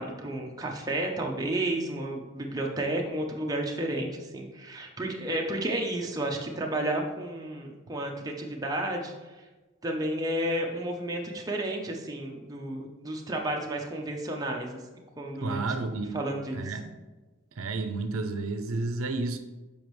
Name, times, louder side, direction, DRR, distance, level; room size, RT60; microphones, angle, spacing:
voice 1, 0.0-9.1 9.8-14.8 15.2-15.7 16.1-16.6, right 1 dB, 20° right, 0 dB, 0.7 m, -32 dB
voice 2, 15.4-16.2 16.5-16.9 17.6-19.4, right 3 dB, 90° right, 8 dB, 0.6 m, -31 dB
7.1 x 5.1 x 3.1 m, 1.2 s
head